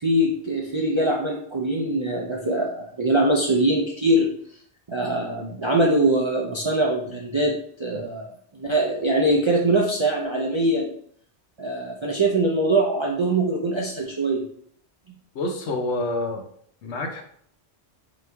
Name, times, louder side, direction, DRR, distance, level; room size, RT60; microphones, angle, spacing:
voice 1, 0.0-4.3 4.9-7.5 7.8-8.3 8.5-10.9 11.6-14.4, right 1 dB, 50° right, -2 dB, 0.3 m, -22 dB
voice 2, 15.3-16.4 16.8-17.2, left 2 dB, 85° left, 4 dB, 1.0 m, -27 dB
3.9 x 3.0 x 3.3 m, 0.62 s
omnidirectional pair, 1.2 m